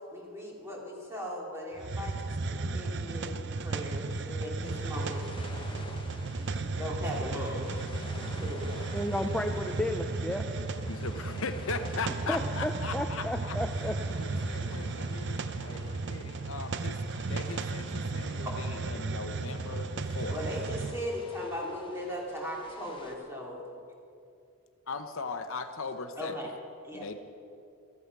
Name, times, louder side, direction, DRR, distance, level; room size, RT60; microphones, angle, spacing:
voice 1, 0.1-5.2 6.4-7.7 8.0-8.8 15.7-15.9 18.4-18.5 20.3-23.6 26.2-26.5 26.8-27.1, equal, 10° right, -2 dB, 2.7 m, -38 dB
Hiss, 1.8-21.0, right 3 dB, 50° right, 0.6 m, -34 dB
sound 1, 4.6-23.2, left 2 dB, 20° left, 1.0 m, -51 dB
voice 2, 8.9-10.5 12.3-14.2, left 1 dB, 5° left, 4 dB, 0.5 m, -33 dB
voice 3, 10.9-13.6 14.2-20.4 24.9-26.3 26.9-27.2, left 4 dB, 65° left, 8 dB, 0.9 m, -39 dB
15.0 x 14.5 x 6.0 m, 2.7 s
head